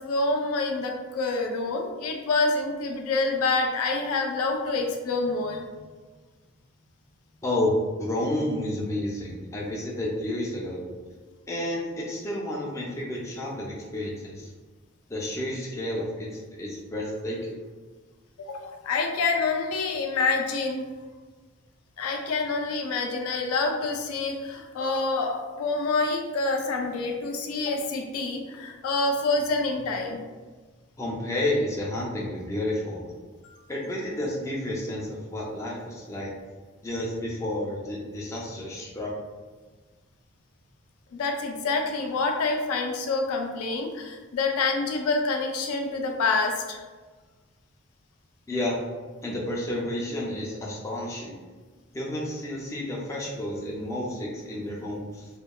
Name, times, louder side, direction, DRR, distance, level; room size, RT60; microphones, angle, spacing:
voice 1, 0.0-5.6 18.4-20.9 22.0-30.2 33.4-33.6 41.1-46.8, left 3 dB, 90° left, 2 dB, 0.4 m, -27 dB
voice 2, 7.4-7.7 8.0-10.9 11.5-14.5 15.1-17.5 31.0-33.1 33.7-36.3 36.8-39.1 48.5-48.8 49.2-51.4 51.9-55.3, left 1 dB, 15° left, -3 dB, 0.3 m, -31 dB
2.8 x 2.1 x 2.2 m, 1.3 s
head